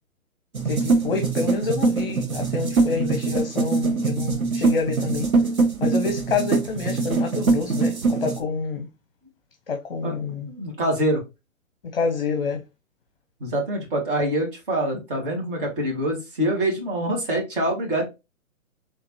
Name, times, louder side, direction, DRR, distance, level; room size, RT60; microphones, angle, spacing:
sound 1, 0.5-8.4, right 4 dB, 75° right, 1.1 m, -23 dB
voice 1, 0.6-5.3 5.8-8.9 9.7-10.5 11.8-12.6, left 4 dB, 40° left, 0.7 m, -27 dB
voice 2, 2.8-3.1 10.0-11.2 13.4-18.1, right 1 dB, 40° right, 2.0 m, -25 dB
3.9 x 3.3 x 2.9 m
figure-of-eight pair, 130°, 42 cm